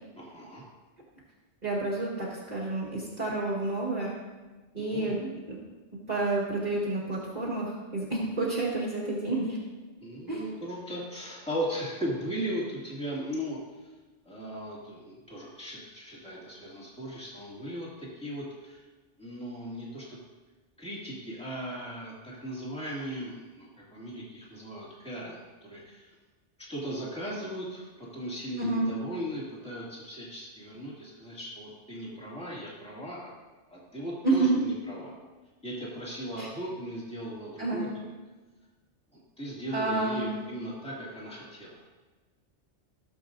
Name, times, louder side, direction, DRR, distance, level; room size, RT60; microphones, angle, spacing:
voice 1, 0.2-0.6 4.8-5.2 10.0-13.6 14.3-18.8 19.2-20.2 20.8-26.1 26.7-33.3 33.7-35.1 35.6-37.9 39.4-41.9, equal, 5° left, -6 dB, 2.4 m, -37 dB
voice 2, 1.6-4.1 4.7-5.6 6.1-9.6 10.3-10.5 28.6-28.9 34.2-34.6 36.4-36.5 37.6-37.9 39.7-40.3, right 2 dB, 40° right, -6 dB, 1.7 m, -29 dB
16.0 x 7.4 x 2.6 m, 1.2 s
omnidirectional pair, 1.2 m